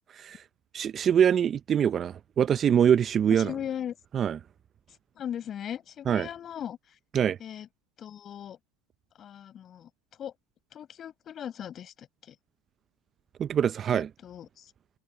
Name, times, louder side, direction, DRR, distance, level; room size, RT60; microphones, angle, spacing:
voice 1, 0.7-3.5 4.1-4.4 6.1-6.3 7.1-7.4 13.4-14.1, right 8 dB, 35° right, 0.6 m, -24 dB
voice 2, 3.3-4.0 5.2-7.0 7.4-7.7 8.0-8.6 9.2-9.9 10.2-10.3 10.7-12.4 13.9-14.7, left 9 dB, 40° left, 5.3 m, -38 dB
hypercardioid pair, 90°, 0 cm